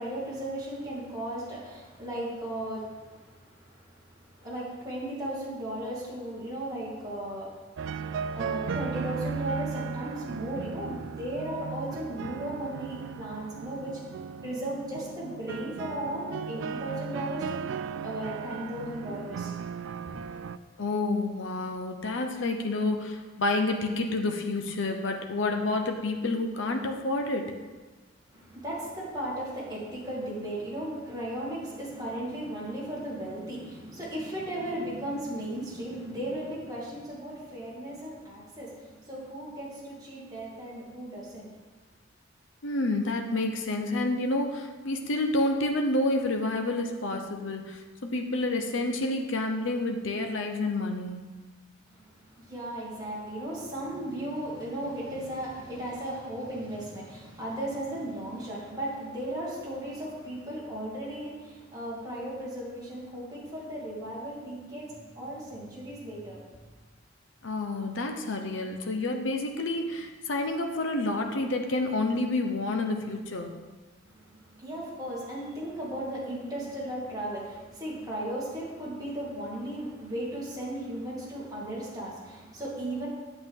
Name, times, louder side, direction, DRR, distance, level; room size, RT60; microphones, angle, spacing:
voice 1, 0.0-7.6 8.3-14.0 14.4-17.6 18.0-19.5 28.3-41.5 51.9-66.4 74.2-83.1, right 1 dB, 20° right, -7 dB, 2.4 m, -36 dB
sound 1, 7.8-20.6, right 6 dB, 65° right, 0.3 m, -36 dB
voice 2, 20.8-27.5 42.6-51.2 67.4-73.5, left 2 dB, 70° left, 4 dB, 0.8 m, -29 dB
9.1 x 7.7 x 3.7 m, 1.3 s
head